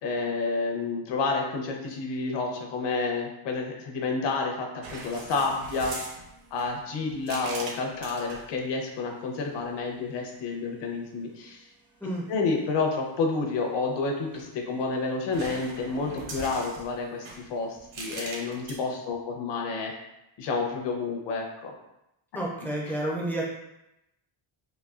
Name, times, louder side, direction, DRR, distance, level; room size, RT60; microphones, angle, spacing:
voice 1, 0.0-5.9 6.5-11.6 12.3-20.0 20.4-21.7, left 3 dB, 60° left, 1 dB, 0.8 m, -30 dB
sound 1, 4.8-8.5 9.4-9.9 14.1-14.9 15.3-18.8, right 2 dB, 65° right, 0.9 m, -41 dB
voice 2, 22.3-23.5, right 1 dB, 5° left, -4 dB, 0.4 m, -30 dB
4.2 x 2.6 x 2.4 m, 0.87 s
cardioid pair, 150°, 50 cm